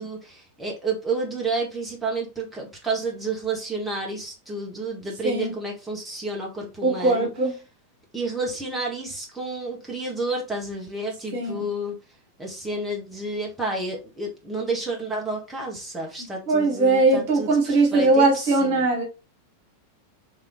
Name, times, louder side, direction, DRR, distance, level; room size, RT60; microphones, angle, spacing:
voice 1, 0.0-7.3 8.1-11.9 12.4-18.9, right 3 dB, 5° right, 1.4 m, -30 dB
voice 2, 5.2-5.5 6.8-7.6 11.3-11.7 16.5-19.0, right 3 dB, 50° right, 1.4 m, -20 dB
3.5 x 3.4 x 3.0 m
figure-of-eight pair, 90°, 0 cm